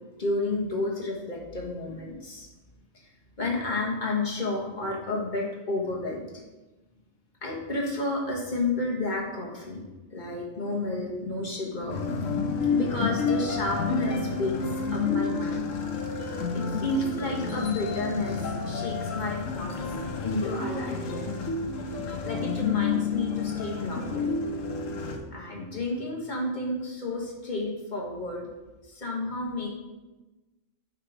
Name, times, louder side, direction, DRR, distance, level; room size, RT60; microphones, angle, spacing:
voice 1, 0.2-2.5 2.9-3.1 3.4-6.2 7.4-9.8 10.1-15.7 16.5-19.7 20.2-21.3 22.2-24.3 25.3-28.5 28.9-29.7, left 2 dB, 35° left, -2 dB, 1.5 m, -31 dB
sound 1, 11.9-25.2, left 4 dB, 75° left, 1.1 m, -30 dB
8.8 x 3.8 x 4.8 m, 1.1 s
omnidirectional pair, 1.4 m